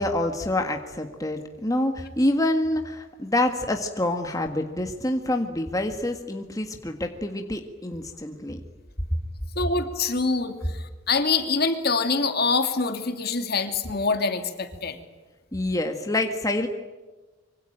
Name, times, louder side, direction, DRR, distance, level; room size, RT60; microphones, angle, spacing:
voice 1, 0.0-8.6 15.5-16.7, left 1 dB, 20° left, 4 dB, 1.7 m, -27 dB
voice 2, 9.6-15.0, left 4 dB, 55° left, 7 dB, 2.8 m, -25 dB
25.5 x 24.5 x 9.1 m, 1.2 s
head